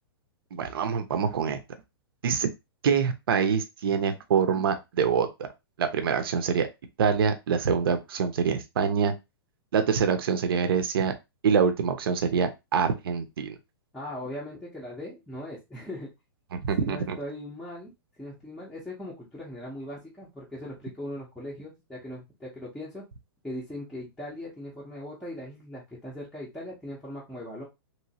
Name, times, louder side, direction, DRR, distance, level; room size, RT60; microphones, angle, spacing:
voice 1, 0.5-1.6 2.2-2.5 2.8-5.3 5.8-6.7 7.0-9.1 9.7-11.1 11.4-13.6 16.5-17.2, right 6 dB, 65° right, 8 dB, 0.6 m, -25 dB
voice 2, 13.9-16.1 16.8-17.9 18.2-23.0 23.4-27.6, left 1 dB, ahead, -7 dB, 0.6 m, -39 dB
3.0 x 3.0 x 2.8 m, 0.23 s
hypercardioid pair, 170°, 13 cm